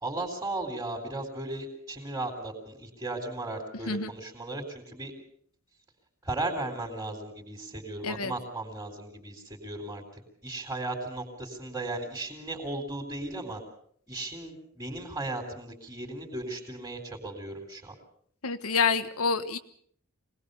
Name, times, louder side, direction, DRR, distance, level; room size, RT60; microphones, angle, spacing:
voice 1, 0.0-5.1 6.2-13.6 14.1-18.0, right 2 dB, 15° right, -2 dB, 4.0 m, -36 dB
voice 2, 18.4-19.6, left 5 dB, 75° left, 9 dB, 1.4 m, -27 dB
25.0 x 19.5 x 7.0 m, 0.63 s
head